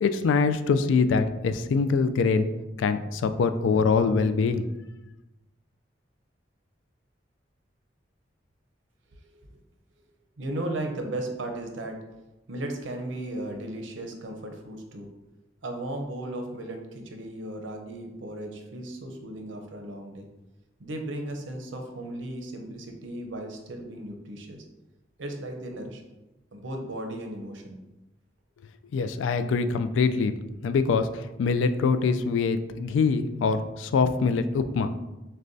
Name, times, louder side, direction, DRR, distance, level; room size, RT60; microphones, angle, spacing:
voice 1, 0.0-2.5 2.8-4.6 28.9-30.3 30.6-34.9, left 5 dB, 90° left, 10 dB, 0.3 m, -24 dB
voice 2, 10.4-12.0 12.5-15.1 15.6-20.3 20.8-24.7 25.2-26.0 26.5-27.8, right 1 dB, 90° right, 3 dB, 0.6 m, -36 dB
6.4 x 2.2 x 2.6 m, 1.0 s
head